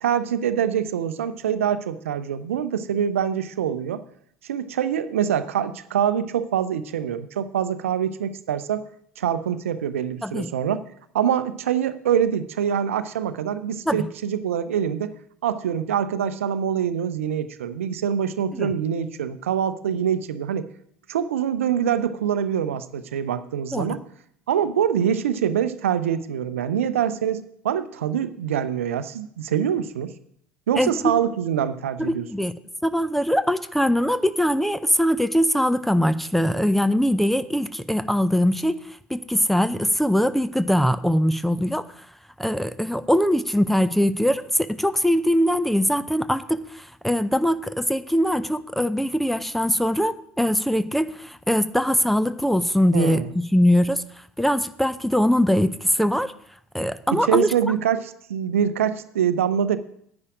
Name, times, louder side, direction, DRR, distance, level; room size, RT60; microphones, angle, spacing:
voice 1, 0.0-4.0 4.4-8.8 9.2-10.8 11.1-15.1 15.4-20.7 21.1-24.0 24.5-30.1 30.7-32.3 52.9-53.3 57.1-59.8, right 9 dB, 70° right, 13 dB, 0.6 m, -24 dB
voice 2, 30.8-31.1 32.0-32.5 32.8-38.8 39.1-41.9 42.4-54.0 54.4-56.3 56.7-57.5, equal, ahead, 14 dB, 0.6 m, -22 dB
9.8 x 9.7 x 4.9 m, 0.68 s
figure-of-eight pair, 70°, 7 cm